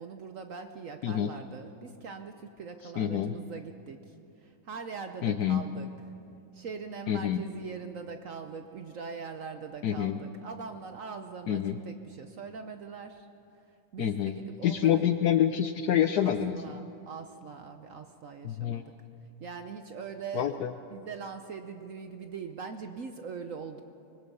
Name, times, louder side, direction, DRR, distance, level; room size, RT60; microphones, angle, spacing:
voice 1, 0.0-4.1 4.4-5.9 6.5-13.3 13.9-15.1 16.2-18.9 19.4-23.8, right 5 dB, 70° right, 7 dB, 0.7 m, -42 dB
voice 2, 3.0-3.3 5.2-5.6 7.1-7.4 9.8-10.2 11.5-11.8 14.0-14.3 14.6-16.6 18.4-18.9 20.3-20.7, left 10 dB, 80° left, 8 dB, 0.8 m, -27 dB
24.5 x 21.0 x 5.5 m, 2.6 s
omnidirectional pair, 2.4 m